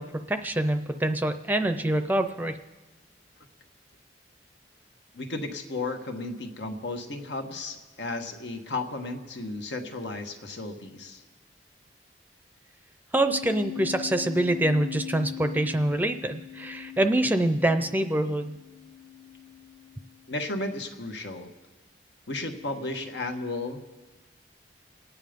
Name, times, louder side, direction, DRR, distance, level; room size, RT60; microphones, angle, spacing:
voice 1, 0.0-2.6 13.1-18.6, right 1 dB, 10° right, 8 dB, 0.5 m, -25 dB
voice 2, 5.1-11.2 20.3-21.5 22.3-23.9, left 2 dB, 85° left, 5 dB, 1.5 m, -34 dB
sound 1, 13.3-20.3, left 11 dB, 60° left, 1.4 m, -41 dB
28.0 x 9.5 x 5.2 m, 1.2 s
head